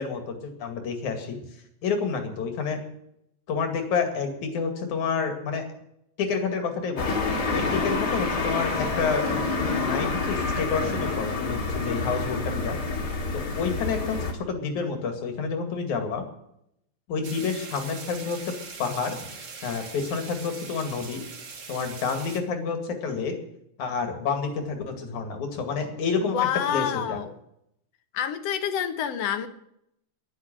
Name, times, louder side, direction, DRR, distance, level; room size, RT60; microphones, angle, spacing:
voice 1, 0.0-2.8 3.5-5.7 6.2-7.2 7.5-9.2 9.7-12.8 13.3-16.3 17.1-18.5 18.8-19.2 19.6-21.2 21.7-23.4 23.8-27.2, left 5 dB, 85° left, 5 dB, 3.7 m, -29 dB
sound 1, 7.0-14.3, left 3 dB, 35° left, 2.5 m, -28 dB
sound 2, 17.2-22.4, right 4 dB, 40° right, 1.2 m, -41 dB
voice 2, 26.2-27.4 28.1-29.5, left 9 dB, 65° left, 9 dB, 2.1 m, -28 dB
10.5 x 10.5 x 9.0 m, 0.76 s
omnidirectional pair, 3.3 m